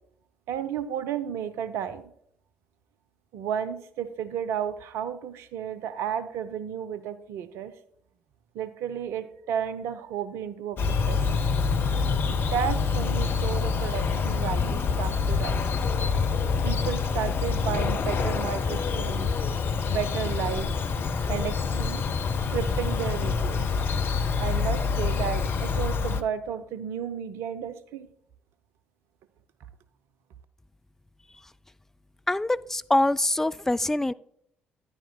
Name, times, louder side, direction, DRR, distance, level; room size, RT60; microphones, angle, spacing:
voice 1, 0.5-2.1 3.3-7.7 8.5-11.3 12.3-15.7 16.6-19.3 19.9-20.7 21.3-22.0 22.5-23.6 24.4-28.1, right 9 dB, 60° right, 12 dB, 0.6 m, -32 dB
Bird vocalization bird call bird song, 10.8-26.2, left 5 dB, 45° left, 0.7 m, -26 dB
voice 2, 32.3-34.1, left 1 dB, 10° left, 14 dB, 0.3 m, -24 dB
10.0 x 9.9 x 2.3 m, 0.70 s
figure-of-eight pair, 45°, 5 cm